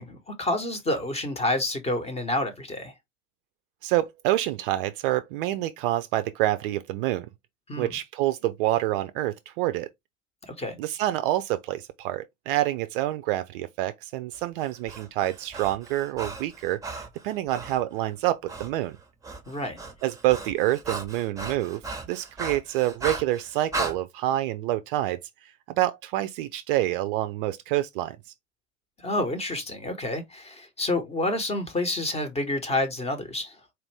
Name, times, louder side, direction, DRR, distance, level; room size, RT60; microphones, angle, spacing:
voice 1, 0.0-2.9 7.7-7.9 10.4-10.8 19.5-19.8 29.0-33.6, left 1 dB, 15° left, 1.0 m, -29 dB
voice 2, 3.8-7.3 7.8-9.9 10.8-19.0 20.0-21.8 22.1-28.2, right 15 dB, 45° right, 0.5 m, -27 dB
Breathing, 14.6-17.8 18.5-18.7 19.0-24.0, right 3 dB, 10° right, 0.8 m, -36 dB
4.4 x 2.6 x 3.2 m
figure-of-eight pair, 80°, 38 cm